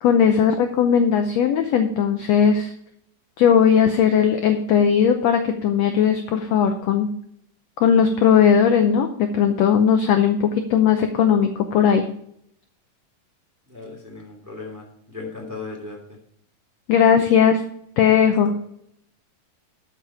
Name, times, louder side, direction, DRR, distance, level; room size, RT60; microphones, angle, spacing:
voice 1, 0.0-2.7 3.4-7.1 7.8-12.0 16.9-17.6 18.0-18.5, left 7 dB, 75° left, 6 dB, 1.6 m, -18 dB
voice 2, 13.7-16.0, left 3 dB, 5° right, 0 dB, 2.3 m, -36 dB
13.0 x 5.9 x 4.9 m, 0.71 s
omnidirectional pair, 3.8 m